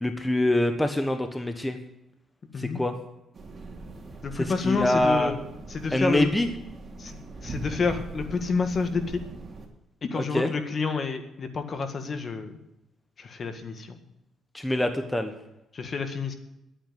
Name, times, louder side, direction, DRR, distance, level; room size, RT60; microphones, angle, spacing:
voice 1, 0.0-1.8 2.6-2.9 4.3-5.3 5.9-6.5 10.1-10.5 14.5-15.3, left 1 dB, 10° left, 7 dB, 1.2 m, -25 dB
sound 1, 3.3-9.7, right 2 dB, 40° right, 3.1 m, -41 dB
voice 2, 4.2-5.4 5.7-6.3 7.0-9.2 10.0-12.6 13.2-14.0 15.7-16.3, left 4 dB, 45° left, 8 dB, 1.8 m, -29 dB
11.5 x 9.0 x 7.7 m, 0.89 s
cardioid pair, 90°, 0 cm